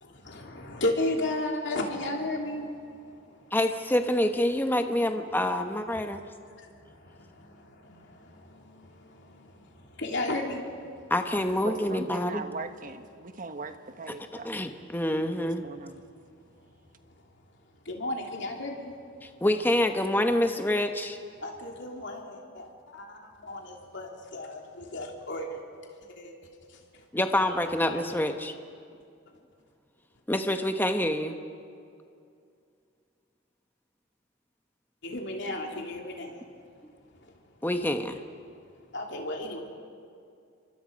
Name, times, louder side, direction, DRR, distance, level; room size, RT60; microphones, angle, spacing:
voice 1, 0.0-3.5 6.6-8.6 10.0-10.7 13.3-13.4 17.8-18.9 21.4-25.6 26.1-26.3 26.7-27.0 27.5-28.2 30.3-30.4 35.0-36.4 37.2-37.3 38.9-39.6, left 1 dB, 60° left, 1 dB, 3.1 m, -34 dB
voice 2, 3.5-6.2 11.1-12.4 14.4-15.6 19.2-21.2 27.1-28.5 30.3-31.4 37.6-38.2, left 1 dB, 10° left, 6 dB, 1.0 m, -27 dB
voice 3, 11.6-14.5 15.2-16.0, right 3 dB, 40° right, 8 dB, 1.2 m, -40 dB
29.0 x 24.0 x 5.3 m, 2.4 s
head